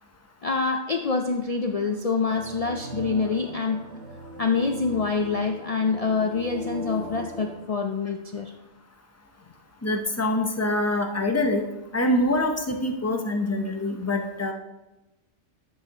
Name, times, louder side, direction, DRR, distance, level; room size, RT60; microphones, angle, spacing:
voice 1, 0.4-3.8 4.4-8.5, left 4 dB, 75° left, 4 dB, 0.3 m, -26 dB
sound 1, 2.2-7.6, right 1 dB, 60° right, 1.4 m, -39 dB
voice 2, 9.8-11.6 11.9-14.5, left 1 dB, 20° left, 3 dB, 0.5 m, -25 dB
11.0 x 5.6 x 2.9 m, 0.98 s
omnidirectional pair, 1.3 m